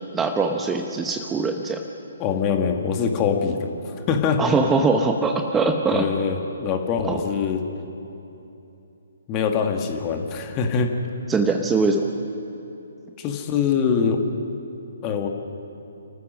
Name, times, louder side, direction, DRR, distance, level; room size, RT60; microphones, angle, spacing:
voice 1, 0.1-1.8 4.4-6.1 7.0-7.2 11.3-12.1, right 4 dB, 10° right, 4 dB, 1.0 m, -22 dB
voice 2, 2.2-3.7 4.1-4.4 5.9-7.6 9.3-10.9 13.2-14.2 15.0-15.3, left 6 dB, 25° left, 4 dB, 1.9 m, -23 dB
29.5 x 14.5 x 6.3 m, 2.9 s
figure-of-eight pair, 135°, 0 cm